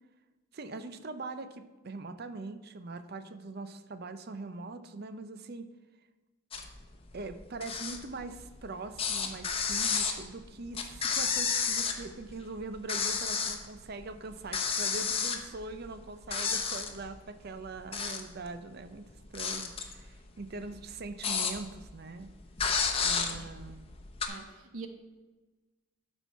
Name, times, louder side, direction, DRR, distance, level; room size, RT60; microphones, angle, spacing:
voice 1, 0.5-5.7 7.1-19.0 19.3-22.3 23.0-23.9, right 3 dB, 50° right, 10 dB, 0.6 m, -42 dB
sound 1, 6.5-6.8 7.1-8.7 9.0-12.3 12.6-13.7 14.0-14.1 14.5-16.0 16.3-17.1 17.7-18.5 18.9-21.9 22.2-22.3 22.6-24.3, left 6 dB, 25° left, 0.8 m, -31 dB
voice 2, 24.3-24.9, right 4 dB, 90° right, 6 dB, 1.1 m, -44 dB
12.5 x 4.5 x 5.6 m, 1.2 s
head